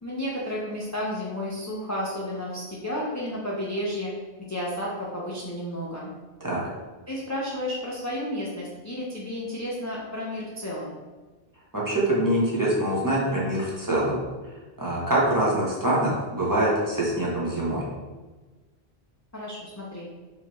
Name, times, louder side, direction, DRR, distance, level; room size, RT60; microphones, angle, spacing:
voice 1, 0.0-4.1 4.4-6.1 7.1-11.0 19.3-20.1, left 1 dB, 25° left, -5 dB, 0.4 m, -32 dB
voice 2, 11.7-14.2 14.8-17.9, right 1 dB, 20° right, -6 dB, 0.9 m, -24 dB
4.4 x 2.8 x 3.1 m, 1.3 s
omnidirectional pair, 1.0 m